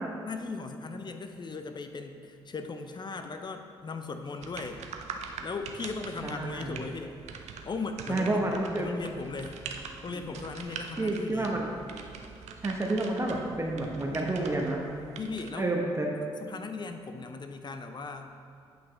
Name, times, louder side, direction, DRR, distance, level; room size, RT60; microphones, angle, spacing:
voice 1, 0.2-4.8 5.4-7.1 7.6-8.4 8.8-9.6 10.0-11.9 15.0-15.7 16.2-18.3, left 4 dB, 35° left, 6 dB, 0.7 m, -38 dB
sound 1, 4.4-15.5, right 5 dB, 60° right, 0.6 m, -44 dB
voice 2, 6.2-6.8 8.1-8.9 10.1-10.2 11.0-11.7 12.6-14.8 15.5-16.1, right 2 dB, 20° right, 0 dB, 0.9 m, -29 dB
8.6 x 5.7 x 3.2 m, 2.5 s
hypercardioid pair, 45°, 13 cm